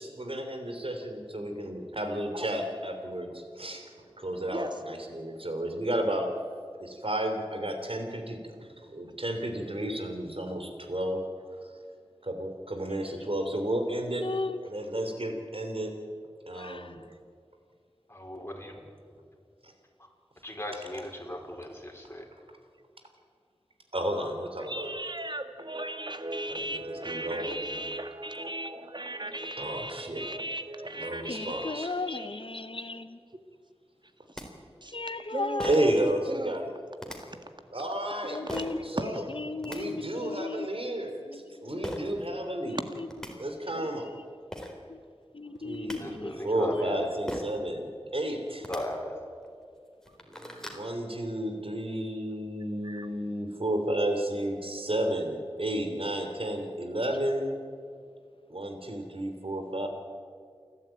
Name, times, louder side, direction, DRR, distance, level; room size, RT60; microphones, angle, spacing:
voice 1, 0.0-3.8 4.2-6.3 6.8-11.3 12.2-14.3 14.6-15.9 16.5-17.0 23.9-24.9 26.7-27.7 29.6-30.2 30.9-31.9 35.6-36.7 37.7-38.4 38.8-39.2 39.6-42.8 43.4-44.1 45.6-48.7 50.3-57.6 58.5-59.9, right 1 dB, 65° right, 5 dB, 3.3 m, -32 dB
voice 2, 4.5-4.8 24.6-32.4 34.3-34.5 34.8-36.6 37.3-37.4 38.4-38.9 52.8-53.1, right 1 dB, 50° right, 7 dB, 1.8 m, -37 dB
voice 3, 14.2-14.6 16.5-17.0 31.3-33.2 34.9-36.0 38.2-40.7 41.2-42.1 42.7-43.1 43.8-43.9 44.9-45.0 45.3-46.8, left 3 dB, 60° left, 11 dB, 1.0 m, -36 dB
voice 4, 18.1-18.8 20.0-20.1 20.4-22.3 46.0-47.1 48.7-49.2, left 1 dB, 25° left, 1 dB, 4.3 m, -37 dB
sound 1, 34.0-34.1 34.4-34.5 35.6-36.0 37.0-37.2 38.5-38.7 39.4-39.8 41.8-42.0 42.8-42.9 43.1-43.3 44.2-44.3 44.5-44.7 45.6-46.0 47.3-47.6 48.5-48.8 49.4-49.5 49.9-50.8, equal, 5° left, 3.7 m, -37 dB
28.5 x 12.5 x 9.1 m, 2.2 s
wide cardioid pair, 45°, 10 cm